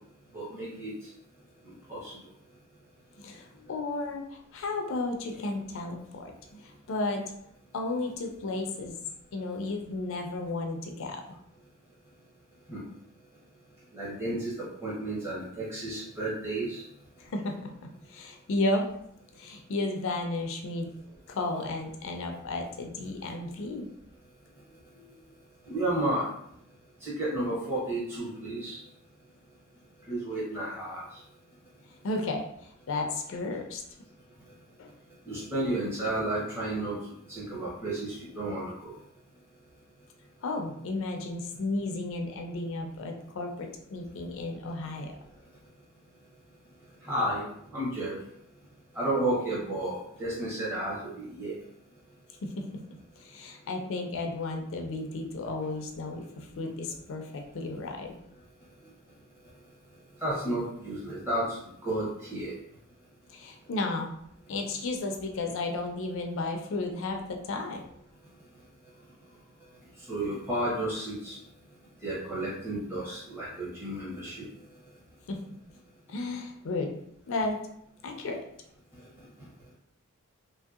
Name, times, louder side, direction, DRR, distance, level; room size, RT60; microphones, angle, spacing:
voice 1, 0.3-0.9 1.6-2.1 12.7-12.8 13.9-16.8 25.7-26.3 27.0-28.8 30.1-31.0 35.3-37.0 37.3-38.9 47.0-47.5 47.7-48.2 48.9-51.6 60.2-62.5 70.1-71.4 72.0-74.5, right 1 dB, 10° right, -7 dB, 0.7 m, -32 dB
voice 2, 3.2-7.2 7.7-9.0 9.3-11.4 17.2-18.9 19.4-20.9 21.3-23.9 24.7-25.1 32.0-33.8 34.8-34.9 40.4-45.1 52.4-52.8 53.2-58.2 58.8-58.9 63.3-64.1 64.5-67.8 75.3-75.4 76.1-76.9 77.3-77.6 78.0-78.5, left 2 dB, 60° left, 3 dB, 0.4 m, -33 dB
3.1 x 2.6 x 2.3 m, 0.73 s
head